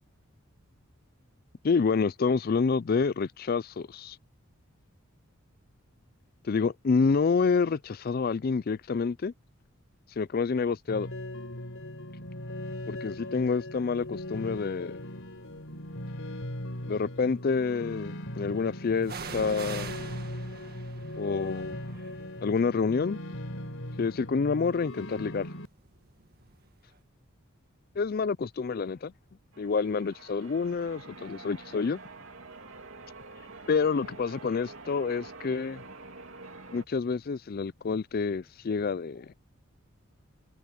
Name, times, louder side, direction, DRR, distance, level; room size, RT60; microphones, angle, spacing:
voice 1, 1.6-4.2 6.5-9.3 10.2-11.1 12.9-15.0 16.9-19.9 21.2-21.8 22.4-23.2 24.0-25.5 28.0-29.1 29.6-32.0 33.7-35.8 36.7-39.3, left 5 dB, 45° left, 0.4 m, -28 dB
sound 1, 10.9-25.7, left 1 dB, 65° left, 4.7 m, -39 dB
sound 2, 14.1-14.5 15.2-16.1 19.0-26.7 27.0-27.1, right 4 dB, 45° right, 1.9 m, -45 dB
Church bell, 29.5-36.8, right 3 dB, 65° right, 2.8 m, -47 dB
head